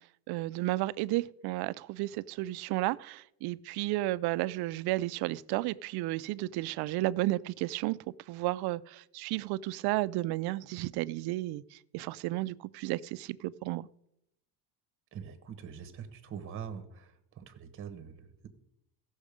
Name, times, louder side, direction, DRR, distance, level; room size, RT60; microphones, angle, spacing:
voice 1, 0.3-8.0 8.3-13.9, right 18 dB, 75° right, 18 dB, 0.5 m, -33 dB
voice 2, 15.1-18.5, right 7 dB, 35° right, 9 dB, 1.0 m, -44 dB
16.0 x 6.3 x 5.0 m, 0.79 s
cardioid pair, 150°, 39 cm